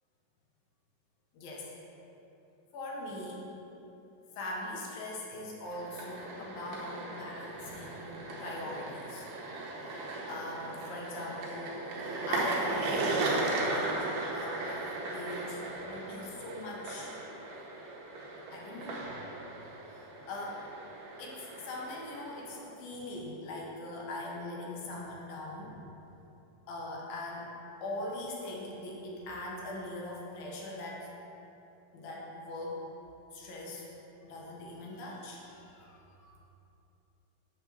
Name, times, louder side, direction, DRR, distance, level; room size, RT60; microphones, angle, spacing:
voice 1, 1.3-1.7 2.7-3.5 4.4-9.3 9.8-17.1 18.5-19.2 19.9-20.7 21.2-25.8 26.7-27.5 27.8-31.1 31.9-32.8 33.3-33.9 34.2-36.3, left 1 dB, 80° left, -3 dB, 2.9 m, -41 dB
sound 1, 5.7-22.6, right 2 dB, 90° right, 2.9 m, -37 dB
8.7 x 3.7 x 6.7 m, 3.0 s
omnidirectional pair, 4.1 m